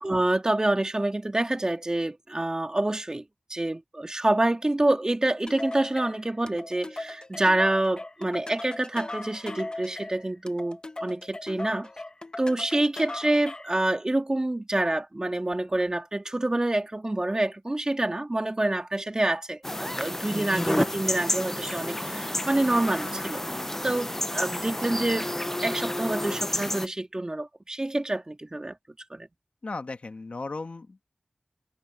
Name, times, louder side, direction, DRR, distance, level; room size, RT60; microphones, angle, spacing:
voice 1, 0.0-3.2 3.5-11.9 12.4-23.4 23.8-25.3 25.6-28.7 29.1-29.3, right 1 dB, 30° right, 2.9 m, -27 dB
sound 1, 5.5-13.8, left 2 dB, 35° left, 1.2 m, -39 dB
sound 2, 19.6-26.9, left 1 dB, 15° left, 0.7 m, -30 dB
voice 2, 29.6-31.0, left 3 dB, 65° left, 1.7 m, -36 dB
wide cardioid pair, 60°, 2 cm